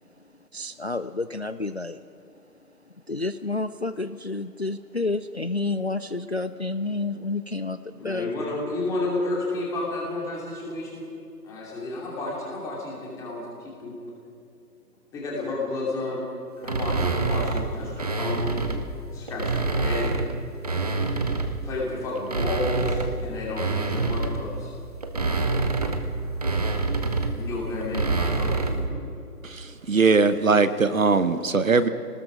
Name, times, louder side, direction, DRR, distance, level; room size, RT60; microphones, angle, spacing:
voice 1, 0.5-2.0 2.9-8.3, left 3 dB, 45° left, 12 dB, 0.4 m, -30 dB
voice 2, 8.0-11.1 11.4-13.9 15.1-16.2 16.6-18.6 19.1-20.2 20.7-20.9 21.6-24.7 27.3-28.9, left 2 dB, 5° left, -4 dB, 2.7 m, -31 dB
sound 1, 16.6-18.9 19.3-21.7 22.1-28.9, right 3 dB, 25° right, 0.9 m, -27 dB
voice 3, 29.4-31.9, right 4 dB, 55° right, 12 dB, 1.1 m, -20 dB
28.5 x 19.5 x 5.1 m, 2.8 s
figure-of-eight pair, 155°, 48 cm